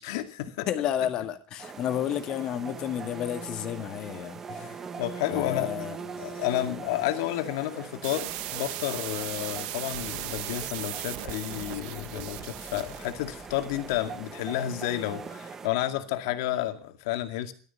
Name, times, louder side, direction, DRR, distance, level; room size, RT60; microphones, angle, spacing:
voice 1, 0.0-0.7 5.0-5.7 6.2-17.5, left 13 dB, 75° left, 2.2 m, -31 dB
voice 2, 0.7-4.9 5.3-6.0 6.3-6.4, left 10 dB, 40° left, 1.8 m, -31 dB
sound 1, 1.6-15.7, right 5 dB, 20° right, 1.1 m, -42 dB
sound 2, 8.0-13.2, right 13 dB, 55° right, 1.3 m, -37 dB
sound 3, 9.9-16.6, left 3 dB, 10° left, 4.4 m, -53 dB
15.0 x 12.5 x 6.9 m
cardioid pair, 160°, 2 cm